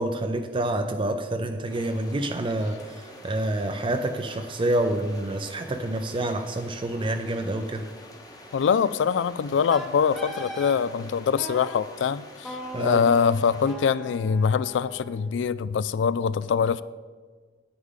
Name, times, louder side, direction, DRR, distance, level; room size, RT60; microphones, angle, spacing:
voice 1, 0.0-7.9 12.7-13.0, right 1 dB, 30° right, 6 dB, 0.4 m, -28 dB
sound 1, 1.7-13.8, left 1 dB, 20° left, 1.1 m, -47 dB
voice 2, 8.5-16.8, left 6 dB, 75° left, 17 dB, 0.3 m, -24 dB
Wind instrument woodwind instrument, 9.7-10.8 11.4-11.8 12.4-15.4, equal, ahead, 0.9 m, -39 dB
9.7 x 8.7 x 3.7 m, 1.5 s
head